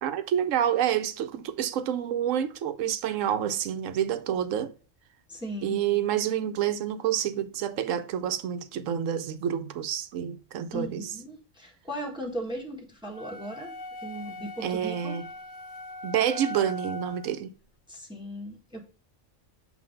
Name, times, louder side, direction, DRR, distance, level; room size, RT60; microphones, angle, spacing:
voice 1, 0.0-4.7 5.6-11.0 14.6-15.2 16.0-17.5, right 10 dB, 85° right, 1.0 m, -28 dB
voice 2, 5.3-5.8 10.7-13.7 14.0-15.2 17.9-18.8, equal, 5° right, 1.3 m, -37 dB
sound 1, 13.1-17.4, left 2 dB, 45° left, 0.9 m, -40 dB
7.7 x 2.7 x 5.0 m
omnidirectional pair, 1.3 m